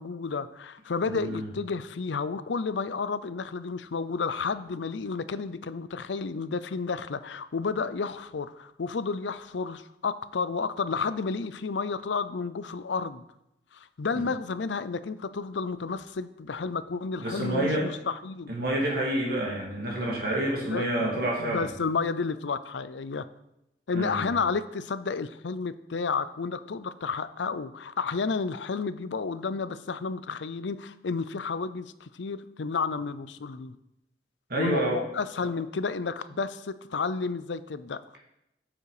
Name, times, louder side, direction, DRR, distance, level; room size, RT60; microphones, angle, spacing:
voice 1, 0.0-13.2 13.7-18.5 20.7-20.9 21.4-23.3 23.9-33.8 34.6-38.0, left 4 dB, 85° left, 14 dB, 0.6 m, -31 dB
voice 2, 1.0-1.5 14.2-14.3 17.2-17.9 18.5-21.7 23.9-24.3 34.5-35.0 35.4-35.5, right 1 dB, 60° right, -2 dB, 2.3 m, -28 dB
9.2 x 7.4 x 4.9 m, 0.85 s
head